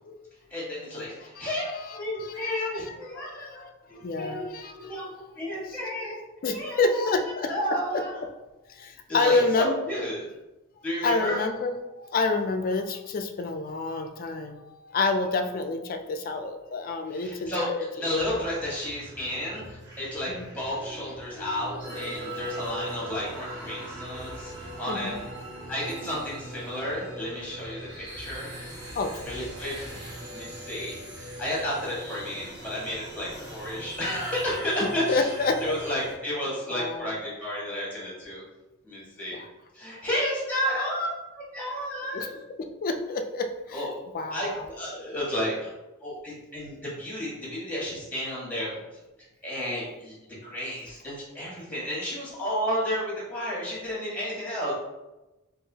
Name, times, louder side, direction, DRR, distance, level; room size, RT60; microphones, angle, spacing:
voice 1, 0.5-1.6 1.9-3.6 3.9-4.4 4.7-5.1 5.3-7.1 7.5-8.2 9.1-10.3 10.8-11.4 17.1-25.1 25.7-28.5 29.2-38.4 38.8-39.4 39.7-42.4 43.7-43.9 44.3-45.7 46.0-48.8 49.4-54.7, left 1 dB, 10° left, -6 dB, 1.5 m, -32 dB
voice 2, 1.4-3.0 3.3-3.7 4.0-5.0 6.4-7.5 8.7-9.8 11.0-18.1 20.4-20.5 24.9-25.2 28.9-29.3 34.8-35.6 36.7-37.1 39.3-39.5 42.1-42.3 42.6-43.9 44.1-44.7, left 3 dB, 45° left, 6 dB, 0.4 m, -29 dB
sound 1, 18.1-36.1, right 1 dB, 55° right, 1.2 m, -40 dB
4.7 x 2.6 x 2.8 m, 1.0 s
head